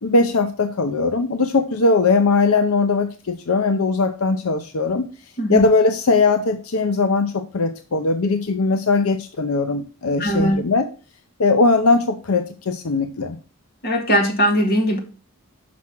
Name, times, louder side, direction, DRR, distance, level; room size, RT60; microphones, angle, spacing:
voice 1, 0.0-5.1 5.5-10.9 11.4-13.4, left 3 dB, 85° left, 8 dB, 0.7 m, -19 dB
voice 2, 10.2-10.6 13.8-15.0, equal, 45° left, 2 dB, 2.2 m, -19 dB
6.1 x 5.8 x 5.9 m, 0.36 s
head